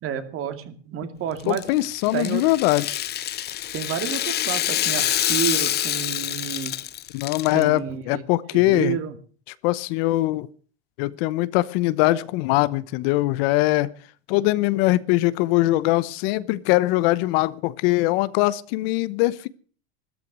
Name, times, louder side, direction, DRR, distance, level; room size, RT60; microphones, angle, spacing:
voice 1, 0.0-1.6 2.1-2.4 3.7-6.7 7.5-8.2 8.5-9.2, right 8 dB, 40° right, 2.5 m, -30 dB
Rattle (instrument), 1.4-7.6, left 13 dB, 30° left, 0.7 m, -26 dB
voice 2, 1.5-3.1 7.1-9.0 9.6-10.5 11.0-13.9 14.3-19.5, left 18 dB, 60° left, 1.0 m, -22 dB
13.5 x 13.0 x 6.2 m
supercardioid pair, 115°, 33 cm